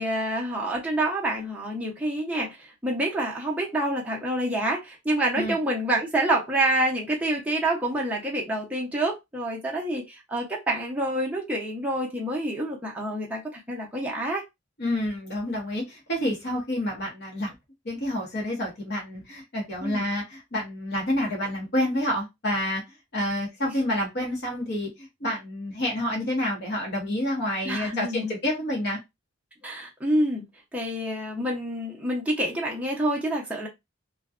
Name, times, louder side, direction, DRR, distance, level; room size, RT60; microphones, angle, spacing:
voice 1, 0.0-14.4 19.8-20.1 23.6-23.7 27.6-28.3 29.6-30.4 30.7-33.7, right 1 dB, 5° right, -3 dB, 0.6 m, -27 dB
voice 2, 14.8-17.5 17.8-22.8 23.1-24.9 25.2-29.0, left 1 dB, 50° left, -1 dB, 0.8 m, -28 dB
2.5 x 2.2 x 2.4 m, 0.21 s
head